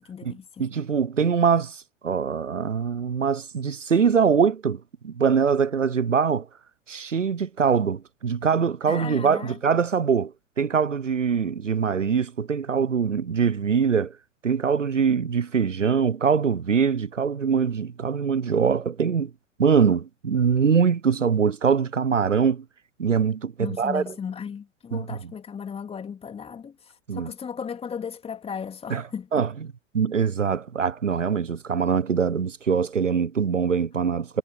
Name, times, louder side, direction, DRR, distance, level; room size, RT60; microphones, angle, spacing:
voice 1, 0.0-0.7 8.9-9.6 23.6-29.5, left 7 dB, 15° left, 2.7 m, -36 dB
voice 2, 0.6-6.5 6.9-14.2 14.4-19.3 19.6-22.6 23.0-24.0 24.9-25.0 27.1-27.3 28.9-29.0 29.3-29.5 29.9-34.4, right 6 dB, 85° right, 0.6 m, -23 dB
figure-of-eight pair, 95°, 37 cm